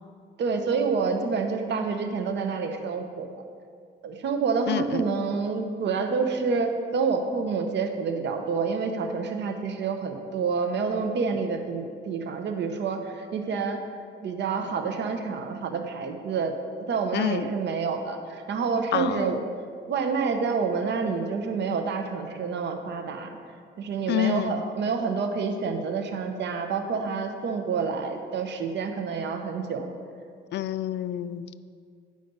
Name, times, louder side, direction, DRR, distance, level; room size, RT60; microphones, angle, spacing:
voice 1, 0.4-3.3 4.0-13.8 14.2-19.4 19.9-23.4 23.8-29.9, right 5 dB, 60° right, 5 dB, 0.9 m, -28 dB
voice 2, 4.7-5.0 17.1-17.5 18.9-19.4 24.1-24.6 30.5-31.6, left 12 dB, 60° left, 14 dB, 0.4 m, -28 dB
9.3 x 5.0 x 5.4 m, 2.2 s
cardioid pair, 90°, 20 cm